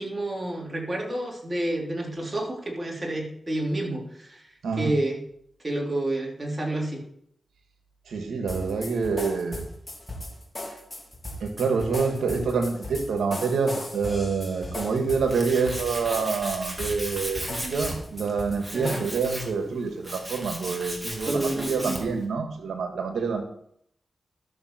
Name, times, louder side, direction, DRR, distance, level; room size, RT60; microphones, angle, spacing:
voice 1, 0.0-4.4 4.8-5.2 5.6-7.0 18.7-19.1 21.3-22.0, right 1 dB, 35° right, -1 dB, 3.6 m, -29 dB
voice 2, 4.6-5.0 8.1-9.6 11.4-23.4, right 5 dB, 90° right, 4 dB, 1.7 m, -27 dB
sound 1, 8.5-19.5, left 1 dB, 30° left, 3.2 m, -37 dB
Tools, 14.7-22.2, right 1 dB, 15° right, 3.1 m, -37 dB
12.5 x 7.2 x 4.4 m, 0.69 s
cardioid pair, 40°, 0 cm